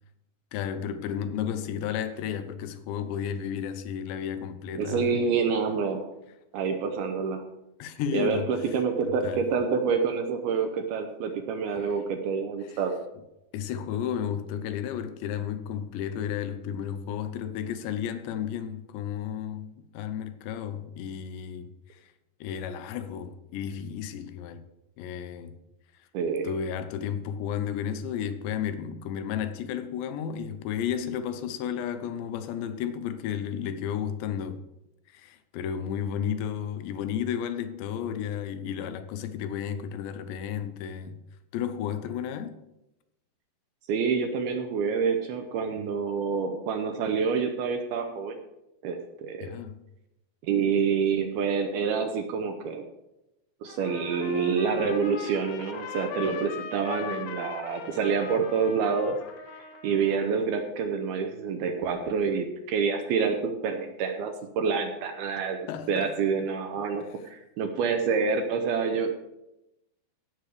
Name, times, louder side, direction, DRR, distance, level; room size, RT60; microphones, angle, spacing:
voice 1, 0.5-5.2 7.8-8.7 9.0-9.4 12.7-12.8 13.5-22.0 22.4-24.6 25.0-25.6 26.4-34.6 35.1-41.2 41.5-42.6 49.4-49.8 65.7-66.1 67.0-67.1, left 8 dB, 90° left, 3.0 m, -33 dB
voice 2, 4.8-6.1 6.5-7.4 8.1-13.0 26.1-26.5 43.9-48.4 48.8-49.5 50.5-52.8 53.6-59.2 59.8-67.0 67.3-69.1, right 5 dB, 75° right, 2.5 m, -27 dB
Trumpet, 53.7-60.4, left 8 dB, 75° left, 2.6 m, -40 dB
16.0 x 6.7 x 4.8 m
omnidirectional pair, 4.9 m